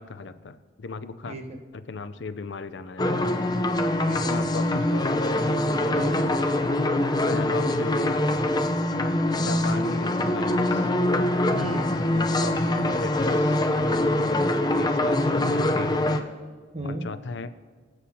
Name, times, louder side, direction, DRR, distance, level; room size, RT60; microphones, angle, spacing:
voice 1, 0.0-1.4 1.7-3.4 4.3-5.1 7.3-8.2 9.4-10.9 12.1-13.6 14.7-16.1 16.8-17.5, left 3 dB, 70° left, 11 dB, 0.6 m, -36 dB
sound 1, 3.0-16.2, left 1 dB, 20° left, 0.7 m, -24 dB
voice 2, 4.1-4.4 5.8-6.3 11.5-11.9 14.1-14.5 16.7-17.0, right 1 dB, 35° right, 4 dB, 1.2 m, -33 dB
24.0 x 8.1 x 2.9 m, 1.5 s
head